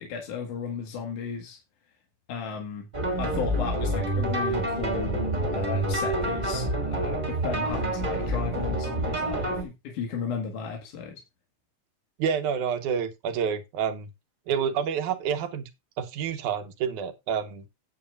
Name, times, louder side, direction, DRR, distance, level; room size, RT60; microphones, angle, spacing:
voice 1, 0.0-1.6 2.3-2.9 3.2-11.2, left 6 dB, 75° left, 3.1 m, -34 dB
sound 1, 2.9-9.6, right 1 dB, 15° right, 2.1 m, -28 dB
voice 2, 12.2-14.1 14.5-15.7 16.0-17.7, right 7 dB, 75° right, 2.6 m, -28 dB
12.5 x 9.1 x 2.4 m
omnidirectional pair, 3.6 m